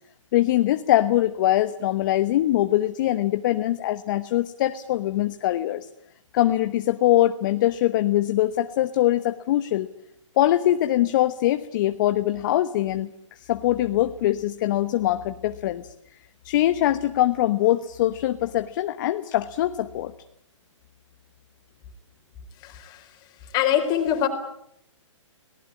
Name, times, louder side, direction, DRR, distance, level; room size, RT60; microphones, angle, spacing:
voice 1, 0.3-5.9 6.3-9.9 10.4-15.9 16.4-20.1, left 14 dB, 40° left, 10 dB, 1.1 m, -22 dB
voice 2, 22.6-23.1 23.5-24.3, left 10 dB, 25° left, 5 dB, 4.4 m, -23 dB
25.0 x 19.0 x 9.9 m, 0.75 s
hypercardioid pair, 140°, 16 cm